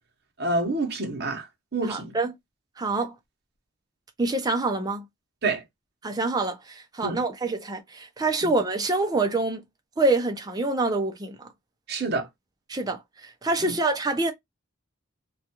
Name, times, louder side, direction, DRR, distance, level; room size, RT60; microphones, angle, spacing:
voice 1, 0.4-1.5 1.7-2.1 5.4-5.6 7.0-7.2 11.9-12.3 13.6-13.7, right 2 dB, 50° right, 0.8 m, -27 dB
voice 2, 1.8-2.3 2.8-3.1 4.2-5.1 6.0-9.6 10.0-11.5 12.7-14.3, right 2 dB, 20° right, 0.4 m, -26 dB
2.3 x 2.2 x 2.8 m
head